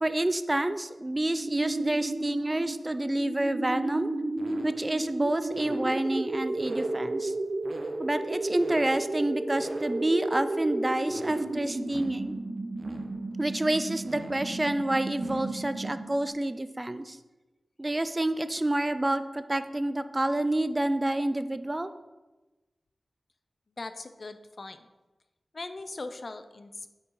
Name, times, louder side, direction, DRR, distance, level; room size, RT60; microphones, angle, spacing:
voice 1, 0.0-4.1 4.6-7.3 8.0-12.4 13.4-17.2 17.8-21.9, right 1 dB, 20° right, 11 dB, 0.4 m, -28 dB
sound 1, 1.4-16.3, right 2 dB, 45° right, 1.0 m, -33 dB
voice 2, 23.8-24.9 25.5-26.9, left 3 dB, 50° left, 10 dB, 0.5 m, -40 dB
8.2 x 5.6 x 4.8 m, 1.1 s
wide cardioid pair, 105°, 0 cm